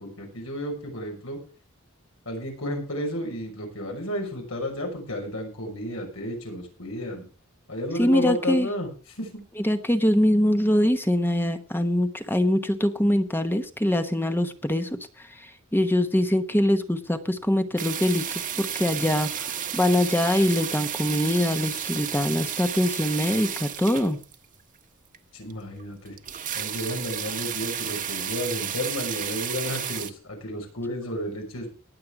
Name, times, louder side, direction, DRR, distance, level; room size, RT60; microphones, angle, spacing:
voice 1, 0.0-1.4 2.3-7.2 7.7-9.4 25.3-26.2 26.5-31.7, left 1 dB, 85° left, 2 dB, 5.8 m, -32 dB
voice 2, 8.0-8.7 9.6-15.0 15.4-24.2, left 1 dB, 10° left, 8 dB, 1.1 m, -23 dB
sound 1, 17.8-24.5 25.1-25.2 25.5-25.6 25.8-25.9 26.1-30.1, right 9 dB, 40° right, 1.2 m, -32 dB
19.0 x 7.8 x 4.8 m, 0.35 s
head